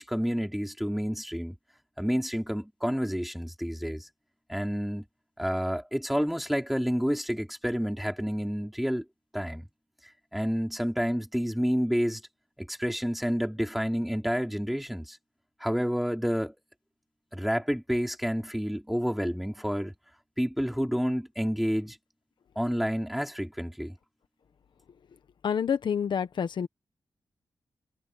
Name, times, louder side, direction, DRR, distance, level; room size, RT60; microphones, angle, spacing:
voice 1, 0.0-1.5 2.0-4.1 4.5-5.0 5.4-9.0 9.3-9.7 10.3-12.2 12.6-15.2 15.6-16.5 17.3-19.9 20.4-22.0 22.5-23.9, equal, ahead, 4.7 m, -29 dB
voice 2, 25.4-26.7, left 7 dB, 75° left, 1.3 m, -28 dB
wide cardioid pair, 90°, 8 cm